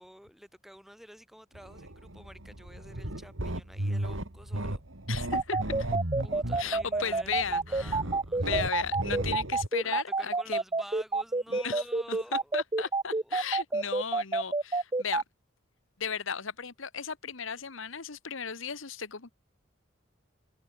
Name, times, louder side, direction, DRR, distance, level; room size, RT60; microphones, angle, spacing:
voice 1, 0.0-4.8 6.2-8.6 9.8-13.4 13.7-14.2, equal, ahead, 5.6 m, -50 dB
sound 1, 1.5-9.7, right 1 dB, 75° right, 3.2 m, -35 dB
voice 2, 5.1-5.9 6.6-8.0 8.4-10.6 11.5-11.8 12.1-12.2 12.5-15.2 16.0-19.3, left 6 dB, 80° left, 1.4 m, -35 dB
sound 2, 5.3-15.2, right 3 dB, 20° right, 0.6 m, -28 dB
head